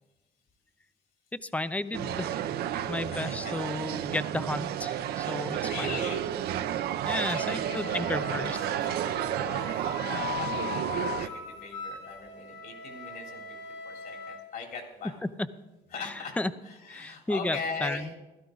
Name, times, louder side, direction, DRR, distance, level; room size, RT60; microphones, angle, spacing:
voice 1, 1.4-2.4 2.9-5.9 7.0-8.6 16.4-16.5 16.9-18.1, left 2 dB, 10° left, 14 dB, 0.6 m, -33 dB
sound 1, 1.9-11.3, right 11 dB, 70° right, 0.8 m, -31 dB
voice 2, 3.0-3.5 5.6-6.2 6.7-9.6 10.0-13.4 13.8-15.2 15.9-16.4 16.6-18.1, left 4 dB, 60° left, 2 dB, 3.7 m, -40 dB
Wind instrument woodwind instrument, 7.3-14.4, left 5 dB, 85° left, 4.9 m, -39 dB
16.0 x 12.5 x 4.0 m, 1.1 s
cardioid pair, 110°, 17 cm